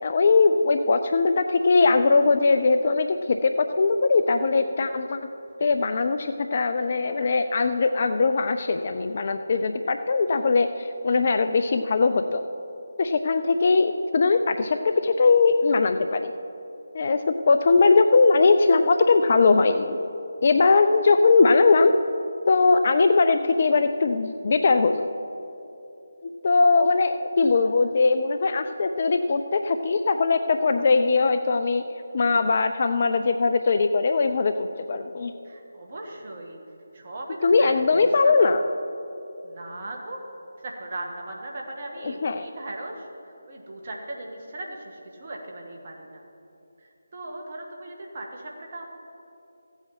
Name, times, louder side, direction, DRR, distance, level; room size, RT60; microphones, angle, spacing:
voice 1, 0.0-5.2 5.6-12.4 13.0-16.3 16.9-20.0 20.4-21.9 22.5-25.1 26.4-31.8 32.1-35.3 37.4-38.6 42.0-42.5, left 4 dB, 40° left, 8 dB, 0.4 m, -20 dB
voice 2, 35.4-36.6 36.9-38.6 39.4-40.2 40.6-46.3 46.8-48.9, right 1 dB, 35° right, 0 dB, 1.6 m, -38 dB
15.0 x 8.0 x 6.0 m, 2.9 s
figure-of-eight pair, 155°, 0 cm